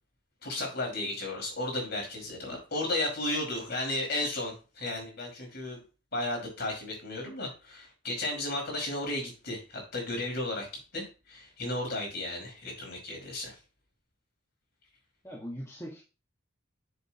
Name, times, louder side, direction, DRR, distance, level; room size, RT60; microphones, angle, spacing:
voice 1, 0.4-5.8 6.1-10.7 10.9-13.6, left 2 dB, 50° left, 1 dB, 5.1 m, -34 dB
voice 2, 15.2-16.0, equal, 15° left, -3 dB, 1.6 m, -41 dB
9.7 x 7.5 x 2.9 m, 0.32 s
head